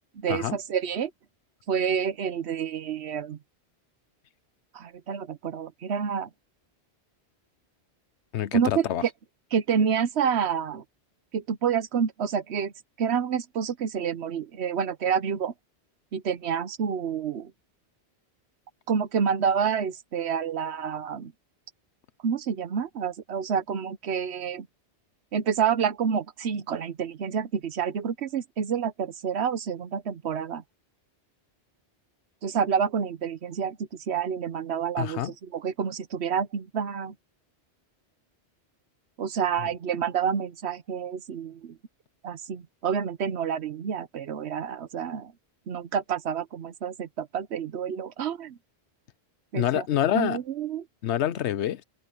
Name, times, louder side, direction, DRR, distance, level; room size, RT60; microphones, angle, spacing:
voice 1, 0.1-1.1 1.7-3.4 4.7-6.3 8.5-9.1 9.5-10.8 11.3-12.7 13.0-15.5 16.1-17.5 18.9-21.3 22.2-24.7 25.3-30.6 32.4-37.1 39.2-41.8 42.2-45.3 45.7-48.6 49.5-49.8 50.1-50.8, right 7 dB, 75° right, 1.1 m, -28 dB
voice 2, 8.3-9.0 35.0-35.3 39.6-39.7 49.5-50.4 51.0-51.8, left 11 dB, 90° left, 1.0 m, -27 dB
open air
omnidirectional pair, 1.1 m